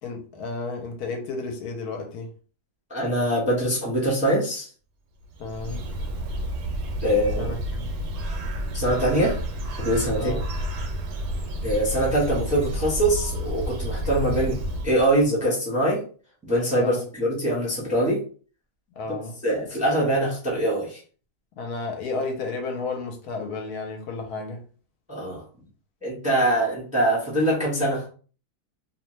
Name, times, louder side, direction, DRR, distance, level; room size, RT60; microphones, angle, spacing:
voice 1, 0.0-2.3 5.4-5.9 7.4-7.9 10.1-10.4 16.8-17.1 19.0-19.4 21.6-24.6, left 3 dB, 75° left, 1.1 m, -32 dB
voice 2, 2.9-4.7 7.0-7.5 8.7-9.4 9.8-10.4 11.6-16.0 16.4-18.2 19.1-19.2 19.4-21.0 25.1-25.4 26.0-28.0, right 1 dB, 5° right, 0.7 m, -23 dB
Bird, 5.2-15.2, right 1 dB, 90° right, 1.2 m, -30 dB
2.8 x 2.1 x 3.0 m
omnidirectional pair, 1.7 m